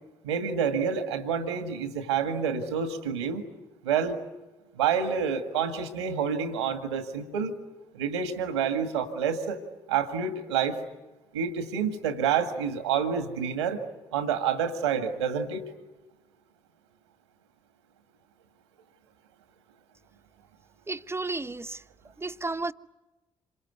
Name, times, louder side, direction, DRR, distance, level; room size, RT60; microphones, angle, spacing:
voice 1, 0.2-3.4 3.8-4.2 4.8-7.5 7.9-9.6 9.9-10.8 11.3-13.8 14.1-15.6, right 7 dB, 80° right, 1.9 m, -28 dB
voice 2, 20.9-21.8 22.2-22.7, right 3 dB, 20° right, 1.0 m, -32 dB
27.0 x 23.0 x 9.5 m
figure-of-eight pair, 40°, 14 cm